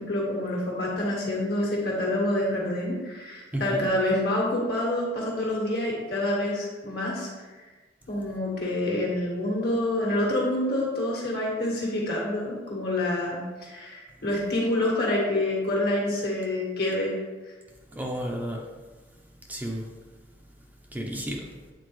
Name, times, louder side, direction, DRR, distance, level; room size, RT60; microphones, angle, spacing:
voice 1, 0.0-7.3 8.1-17.2, left 1 dB, 65° left, -3 dB, 1.8 m, -27 dB
voice 2, 3.5-3.9 17.9-18.7 19.5-19.9 20.9-21.5, equal, 10° right, 0 dB, 0.6 m, -32 dB
8.3 x 4.0 x 3.1 m, 1.3 s
head